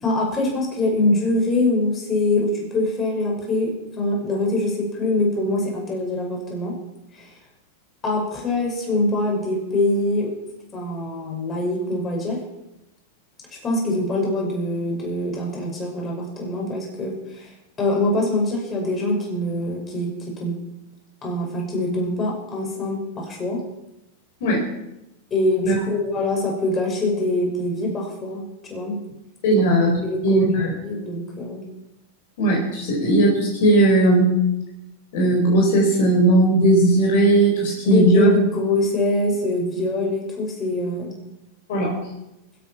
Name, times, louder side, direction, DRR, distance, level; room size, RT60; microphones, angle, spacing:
voice 1, 0.0-6.7 7.2-7.3 8.0-10.3 10.7-12.4 13.6-17.5 17.8-20.1 20.4-20.5 21.2-23.6 25.3-29.0 30.0-30.5 30.8-31.6 37.8-41.1, left 2 dB, 25° left, -1 dB, 5.8 m, -24 dB
voice 2, 29.4-29.9 30.2-30.7 32.4-34.4 35.1-38.3 41.7-41.9, right 1 dB, 65° left, -1 dB, 4.4 m, -17 dB
20.0 x 8.9 x 5.8 m, 0.91 s
hypercardioid pair, 105°, 0 cm